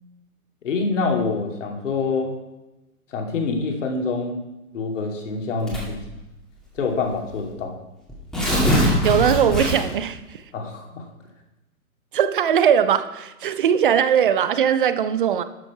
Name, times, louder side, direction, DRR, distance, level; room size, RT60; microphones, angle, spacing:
voice 1, 0.6-2.4 3.1-4.4 4.7-6.0 6.8-7.7 10.5-11.1, left 4 dB, 55° left, 2 dB, 2.2 m, -26 dB
Tearing, 5.7-6.1 6.9-7.0 7.3-7.4 8.1-10.0, equal, ahead, 2.0 m, -21 dB
voice 2, 9.0-10.4 12.1-15.4, right 8 dB, 35° right, 13 dB, 0.5 m, -20 dB
12.0 x 6.3 x 4.7 m, 1.0 s
figure-of-eight pair, 130°, 44 cm